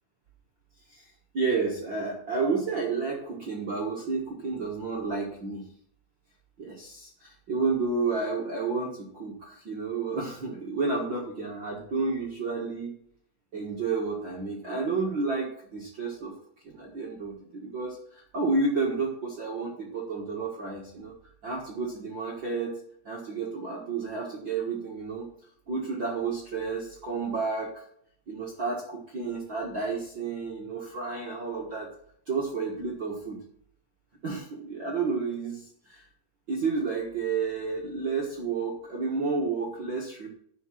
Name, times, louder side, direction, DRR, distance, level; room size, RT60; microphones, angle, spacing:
voice 1, 0.9-5.7 6.6-12.9 13.5-16.3 16.6-21.1 21.4-22.7 23.0-25.2 25.7-27.9 28.3-31.9 32.3-33.4 34.2-36.0 36.5-40.3, right 4 dB, 65° right, -2 dB, 1.1 m, -31 dB
11.5 x 4.8 x 7.6 m, 0.63 s
omnidirectional pair, 5.0 m